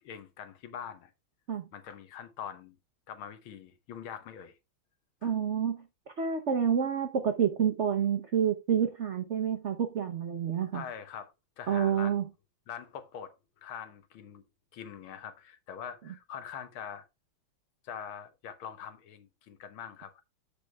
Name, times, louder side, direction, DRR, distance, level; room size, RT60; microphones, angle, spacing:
voice 1, 0.0-1.1 1.7-2.8 3.1-4.6 5.2-5.3 10.7-12.2 12.7-14.4 14.7-17.1 17.8-20.2, left 8 dB, 80° left, 1.8 m, -43 dB
voice 2, 5.2-5.8 6.2-10.8 11.7-12.3, right 8 dB, 65° right, 0.7 m, -28 dB
13.5 x 5.1 x 2.3 m
omnidirectional pair, 2.3 m